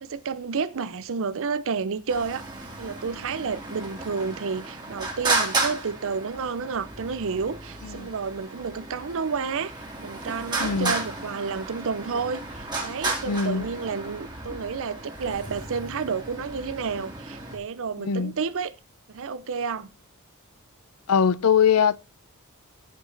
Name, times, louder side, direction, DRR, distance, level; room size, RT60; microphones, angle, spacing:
voice 1, 0.0-2.5 2.8-9.7 10.0-18.7 19.1-19.9, right 5 dB, 60° right, 0.6 m, -30 dB
Traffic noise roadway noise, 2.1-17.6, right 3 dB, 20° right, 3.1 m, -33 dB
voice 2, 7.8-8.1 10.6-11.0 13.3-13.7 18.0-18.3 21.1-22.0, left 7 dB, 75° left, 0.6 m, -22 dB
15.0 x 5.1 x 3.9 m
head